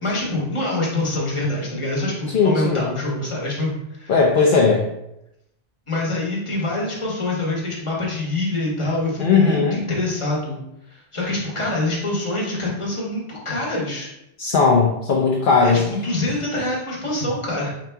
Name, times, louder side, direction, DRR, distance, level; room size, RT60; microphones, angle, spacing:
voice 1, 0.0-4.1 5.9-10.6 10.9-14.1 15.6-17.7, left 2 dB, 25° left, -3 dB, 1.2 m, -25 dB
voice 2, 2.3-2.9 4.1-4.9 9.2-9.8 14.4-15.8, left 4 dB, 55° left, 0 dB, 0.7 m, -17 dB
4.9 x 2.9 x 3.4 m, 0.85 s
omnidirectional pair, 1.2 m